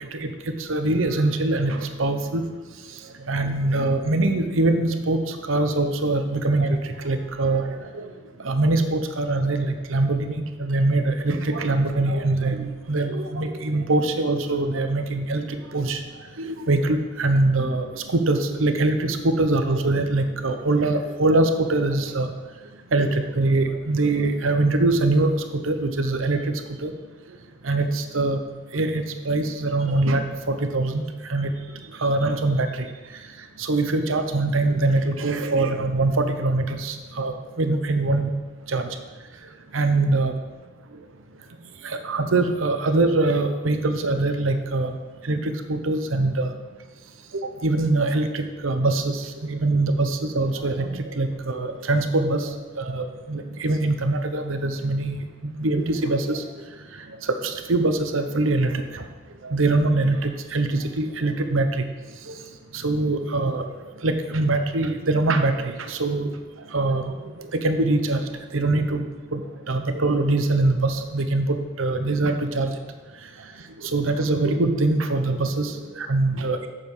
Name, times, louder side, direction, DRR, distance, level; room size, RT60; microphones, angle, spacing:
voice 1, 0.6-2.4 3.3-6.8 7.0-8.1 8.4-16.0 16.4-22.3 22.9-25.3 25.6-26.9 27.6-28.4 28.7-31.0 31.3-31.5 32.0-32.7 33.6-38.3 38.7-38.9 39.7-40.3 41.8-44.9 45.2-46.5 47.6-56.4 57.4-59.0 59.4-61.7 62.3-62.4 62.7-63.7 64.0-66.3 66.7-68.2 68.5-69.0 69.3-69.4 69.7-72.7 73.8-76.7, right 2 dB, 75° right, 7 dB, 0.8 m, -23 dB
8.2 x 6.8 x 5.5 m, 1.3 s
head